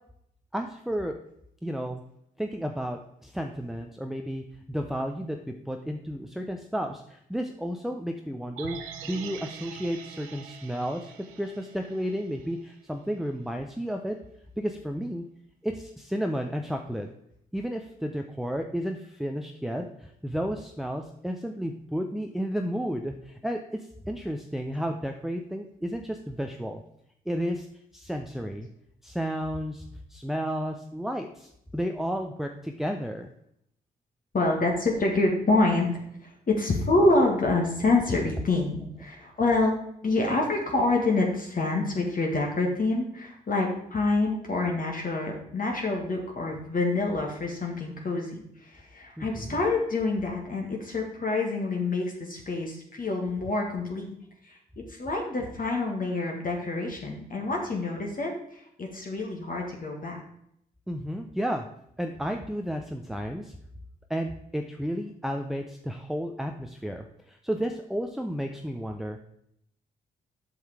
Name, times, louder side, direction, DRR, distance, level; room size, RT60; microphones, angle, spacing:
voice 1, 0.5-1.1 1.6-2.0 2.4-14.2 14.6-15.2 15.6-17.1 17.5-26.8 27.3-27.7 27.9-28.7 29.0-33.3 49.2-49.6 60.9-61.7 62.0-63.5 64.1-69.2, equal, ahead, 4 dB, 0.8 m, -32 dB
sound 1, 8.6-12.8 13.1-13.2, right 8 dB, 80° right, 0.7 m, -44 dB
voice 2, 34.3-35.9 36.2-39.8 40.0-54.1 54.4-54.6 54.9-60.2, left 2 dB, 40° left, 0 dB, 1.9 m, -27 dB
7.8 x 5.6 x 4.9 m, 0.73 s
hypercardioid pair, 45°, 21 cm